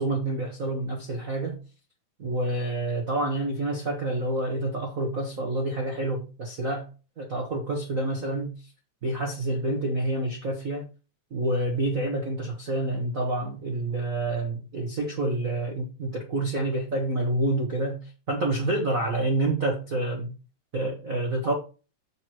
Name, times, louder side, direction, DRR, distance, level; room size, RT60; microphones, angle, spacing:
voice 1, 0.0-1.6 2.2-6.9 7.2-8.5 9.0-10.9 11.3-20.3 20.7-21.5, right 2 dB, 45° right, 1.0 m, -28 dB
7.2 x 6.8 x 3.0 m
omnidirectional pair, 3.4 m